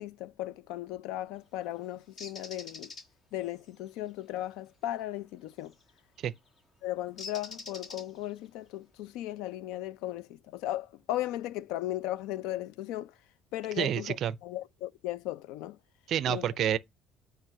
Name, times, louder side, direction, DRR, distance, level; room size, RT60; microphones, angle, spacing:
voice 1, 0.0-2.9 3.3-5.7 6.8-13.1 13.5-14.2 14.4-15.8 16.3-16.4, left 14 dB, 90° left, 0.5 m, -36 dB
Bird, 2.2-3.0 5.7-5.9 7.2-8.4, left 4 dB, 20° left, 1.4 m, -43 dB
voice 2, 13.8-14.4 16.1-16.8, right 10 dB, 45° right, 0.5 m, -28 dB
9.1 x 3.3 x 6.0 m
cardioid pair, 175°, 0 cm